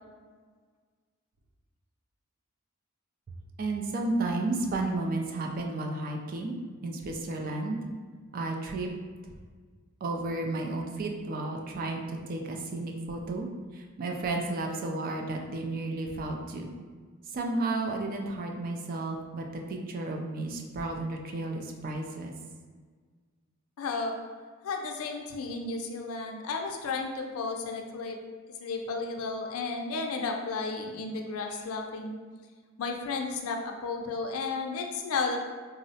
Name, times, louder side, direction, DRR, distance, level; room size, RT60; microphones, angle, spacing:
voice 1, 3.6-6.6 6.8-7.8 8.3-8.9 10.0-13.5 13.7-16.7 17.3-22.3, right 2 dB, 40° right, 1 dB, 0.3 m, -32 dB
voice 2, 23.8-24.2 24.6-28.2 28.6-32.2 32.8-35.4, left 4 dB, 80° left, 3 dB, 0.4 m, -33 dB
3.6 x 2.0 x 2.7 m, 1.6 s
head